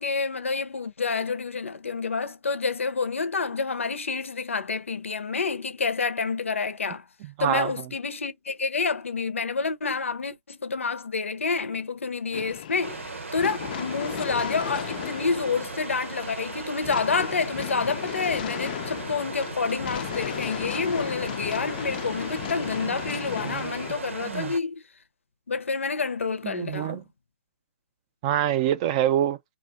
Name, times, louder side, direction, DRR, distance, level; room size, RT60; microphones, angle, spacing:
voice 1, 0.0-7.0 7.4-24.8 25.5-27.0, left 4 dB, 85° left, 0.6 m, -28 dB
voice 2, 7.4-7.7 22.8-22.9 23.4-23.7 24.2-24.5 26.4-27.0 28.2-29.4, right 11 dB, 30° right, 0.3 m, -25 dB
sound 1, 12.3-23.9, left 11 dB, 45° left, 0.3 m, -35 dB
sound 2, 12.8-24.6, right 4 dB, 80° right, 0.8 m, -38 dB
2.4 x 2.3 x 4.0 m
hypercardioid pair, 140°, 7 cm